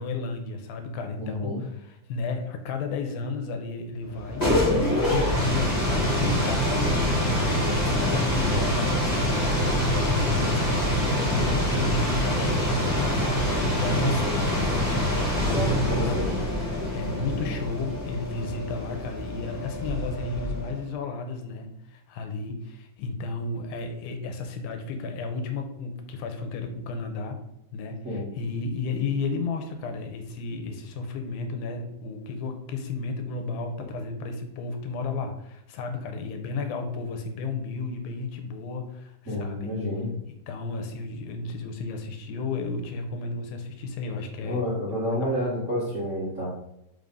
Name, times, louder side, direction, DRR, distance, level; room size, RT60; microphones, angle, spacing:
voice 1, 0.0-16.3 16.6-27.4 27.7-39.8 40.5-44.6 45.2-45.3, left 4 dB, 85° left, 5 dB, 2.7 m, -33 dB
voice 2, 1.2-1.6 8.5-8.7 15.5-16.3 28.0-28.3 39.2-40.1 44.4-46.5, left 1 dB, 35° right, -8 dB, 1.3 m, -29 dB
sound 1, 4.1-20.8, equal, 20° left, 1.1 m, -25 dB
5.5 x 3.8 x 5.4 m, 0.81 s
omnidirectional pair, 4.1 m